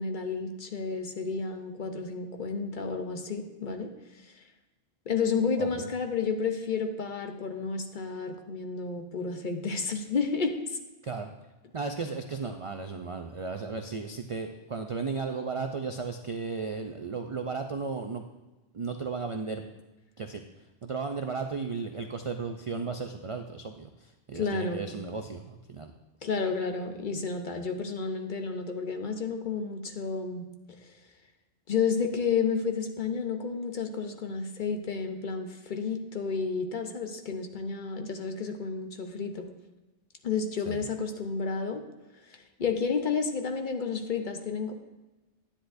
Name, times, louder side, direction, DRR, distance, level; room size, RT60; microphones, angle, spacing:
voice 1, 0.0-3.9 5.1-10.8 24.3-24.8 26.2-30.5 31.7-39.5 40.2-41.8 42.6-44.7, left 5 dB, 50° left, 5 dB, 0.8 m, -31 dB
voice 2, 11.7-18.2 18.7-19.6 20.2-20.4 20.8-25.9 40.6-40.8, right 4 dB, 55° right, 5 dB, 0.3 m, -35 dB
10.0 x 9.9 x 2.6 m, 1.1 s
omnidirectional pair, 1.2 m